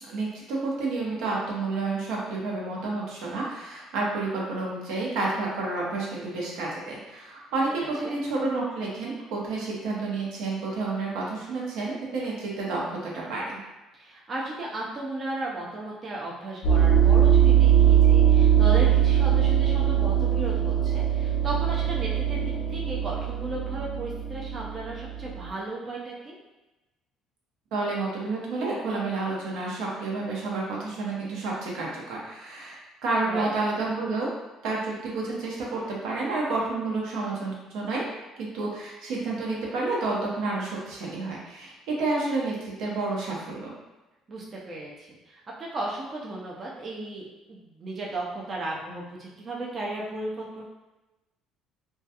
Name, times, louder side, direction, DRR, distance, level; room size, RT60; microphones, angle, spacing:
voice 1, 0.0-13.6 27.7-34.3 34.6-38.1 38.4-43.7, right 3 dB, 80° right, -4 dB, 0.7 m, -30 dB
voice 2, 14.0-26.3 33.1-33.5 44.3-50.6, right 2 dB, 35° right, -4 dB, 0.4 m, -35 dB
sound 1, 16.6-25.3, right 10 dB, 70° left, 0.5 m, -21 dB
2.2 x 2.2 x 2.7 m, 1.1 s
cardioid pair, 120°, 0 cm